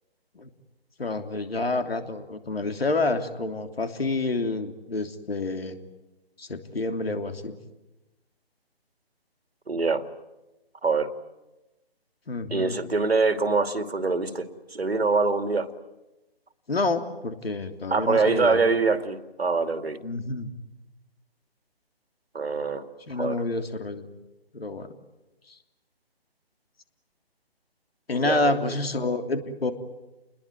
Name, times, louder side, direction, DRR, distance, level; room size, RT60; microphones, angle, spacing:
voice 1, 1.0-5.8 6.4-7.5 12.3-12.8 16.7-18.7 20.0-20.5 23.1-24.1 24.5-24.9 25.5-25.6 28.1-29.7, left 2 dB, 70° left, 8 dB, 3.2 m, -28 dB
voice 2, 9.7-10.0 10.8-11.1 12.5-15.7 17.9-20.0 22.3-22.8 23.1-23.4 28.2-28.6, right 4 dB, 75° right, 9 dB, 2.6 m, -24 dB
29.5 x 21.0 x 9.4 m, 1.0 s
figure-of-eight pair, 140°, 31 cm